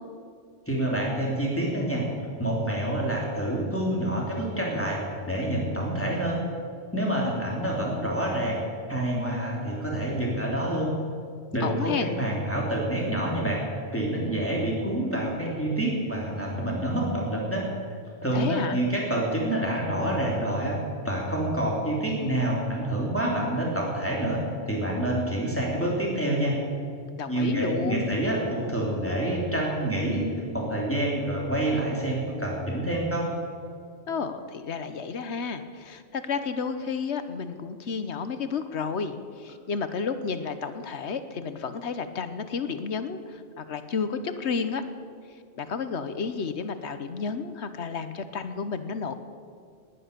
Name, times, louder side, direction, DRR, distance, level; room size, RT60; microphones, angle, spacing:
voice 1, 0.7-2.0 2.4-6.4 6.9-8.6 8.9-10.9 11.5-13.6 13.9-17.7 18.2-20.8 21.0-24.4 24.7-26.6 27.3-30.3 30.5-33.3, right 1 dB, 10° left, -3 dB, 3.1 m, -27 dB
voice 2, 11.6-12.1 18.3-18.8 27.2-28.1 34.1-44.8 45.6-49.1, left 5 dB, 70° left, 10 dB, 1.2 m, -31 dB
19.5 x 10.0 x 6.8 m, 2.3 s
omnidirectional pair, 1.2 m